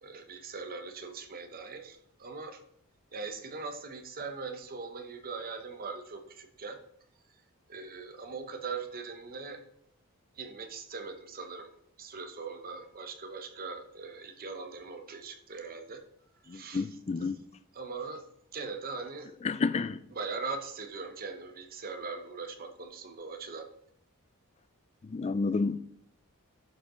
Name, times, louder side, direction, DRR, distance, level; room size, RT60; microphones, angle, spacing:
voice 1, 0.0-2.6 3.1-6.8 7.7-9.6 10.4-16.0 16.4-17.4 17.7-18.2 18.5-19.3 20.1-23.7, right 4 dB, 40° right, 0.9 m, -41 dB
voice 2, 16.5-17.3 19.4-20.0 25.1-25.8, left 4 dB, 30° left, 0.3 m, -30 dB
11.5 x 5.2 x 3.8 m
head